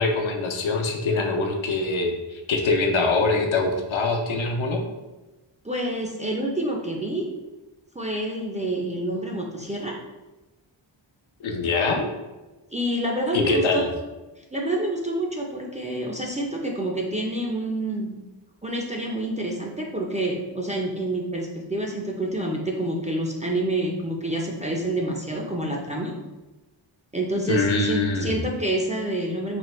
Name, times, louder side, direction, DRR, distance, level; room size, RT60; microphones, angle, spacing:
voice 1, 0.0-4.8 11.4-12.0 13.3-13.9 27.5-28.4, left 3 dB, 70° left, 3 dB, 0.6 m, -23 dB
voice 2, 5.6-7.2 8.0-9.9 12.7-13.8 14.5-18.1 18.6-26.1 27.1-29.6, right 1 dB, 15° right, -1 dB, 0.4 m, -28 dB
3.3 x 2.1 x 3.0 m, 1.1 s
wide cardioid pair, 55°, 50 cm